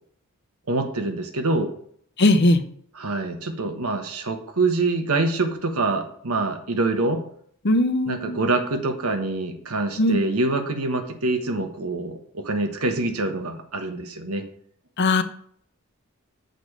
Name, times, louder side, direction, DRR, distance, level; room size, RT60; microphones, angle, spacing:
voice 1, 0.7-1.7 3.0-7.2 8.1-14.5, right 2 dB, 90° right, 6 dB, 1.3 m, -25 dB
voice 2, 2.2-2.6 7.6-8.4 10.0-10.2 15.0-15.2, left 2 dB, 50° left, 10 dB, 0.8 m, -19 dB
6.8 x 5.2 x 6.6 m, 0.63 s
head